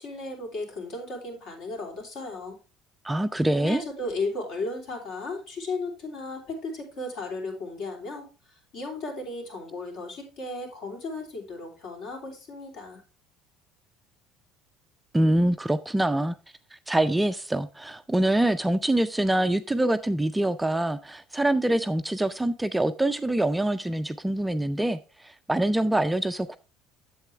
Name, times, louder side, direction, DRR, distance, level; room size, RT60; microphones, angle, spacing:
voice 1, 0.0-2.6 3.5-13.0, left 2 dB, 60° left, 3.5 m, -35 dB
voice 2, 3.0-3.8 15.1-16.3 16.9-26.6, right 1 dB, 5° right, 0.4 m, -25 dB
8.1 x 7.6 x 3.4 m
cardioid pair, 135°, 0 cm